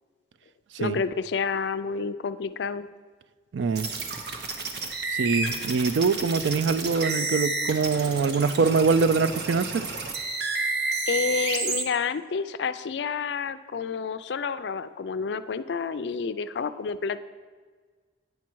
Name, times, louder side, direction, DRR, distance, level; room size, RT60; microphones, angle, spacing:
voice 1, 0.8-2.9 11.1-17.2, left 5 dB, 70° left, 13 dB, 0.4 m, -29 dB
voice 2, 3.5-3.9 5.1-9.9, right 4 dB, 85° right, 15 dB, 0.4 m, -24 dB
sound 1, 3.7-11.8, right 3 dB, 65° right, 1.0 m, -30 dB
9.2 x 7.2 x 4.6 m, 1.5 s
head